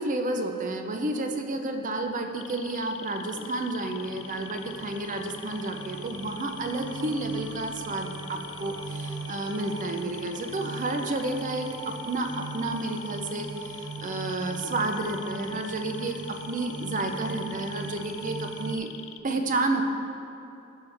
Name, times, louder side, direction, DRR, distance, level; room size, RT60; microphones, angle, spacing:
voice 1, 0.0-18.9 19.2-19.8, right 2 dB, 40° right, 5 dB, 0.6 m, -31 dB
sound 1, 2.4-19.2, left 11 dB, 65° left, 0.4 m, -44 dB
sound 2, 2.5-18.8, right 4 dB, 80° right, 0.5 m, -40 dB
14.0 x 5.5 x 3.4 m, 2.8 s
head